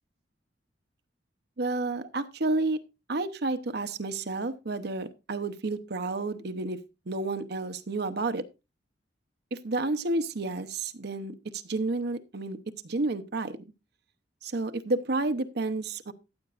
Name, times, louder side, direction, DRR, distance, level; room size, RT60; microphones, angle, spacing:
voice 1, 1.6-2.8 3.1-6.8 7.1-8.4 9.5-12.6 12.8-13.6 14.4-16.1, right 2 dB, 60° right, 9 dB, 0.9 m, -30 dB
14.5 x 8.7 x 2.5 m, 0.26 s
head